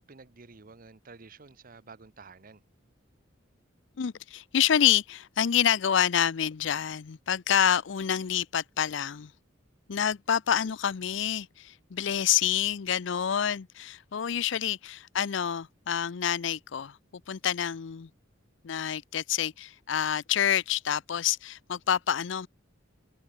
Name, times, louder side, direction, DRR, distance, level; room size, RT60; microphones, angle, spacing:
voice 1, 0.0-2.6 14.5-14.6, right 4 dB, 45° right, 0.9 m, -51 dB
voice 2, 4.0-9.3 9.9-17.0 17.3-18.1 18.6-22.5, left 9 dB, 65° left, 0.5 m, -27 dB
head